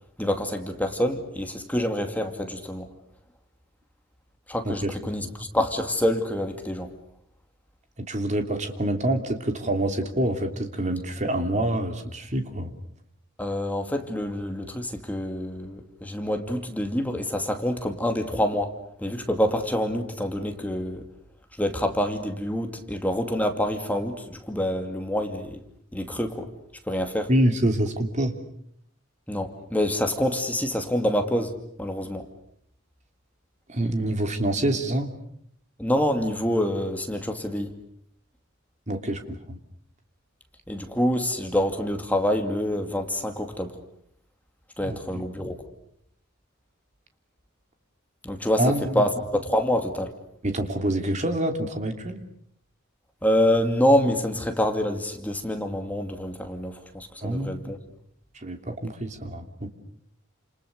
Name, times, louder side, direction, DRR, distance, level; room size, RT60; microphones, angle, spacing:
voice 1, 0.2-2.9 4.5-6.9 13.4-21.0 21.6-25.6 25.9-26.5 26.9-27.3 29.3-31.5 31.8-32.3 35.8-37.7 40.7-43.8 44.8-45.6 48.2-50.1 53.2-57.8, equal, 10° left, 5 dB, 2.4 m, -26 dB
voice 2, 8.0-12.7 27.3-28.4 33.7-35.1 38.9-39.6 44.8-45.2 48.6-49.1 50.4-52.2 57.2-57.8 58.3-59.7, right 1 dB, 35° right, 5 dB, 3.1 m, -26 dB
30.0 x 28.0 x 6.7 m, 0.69 s
head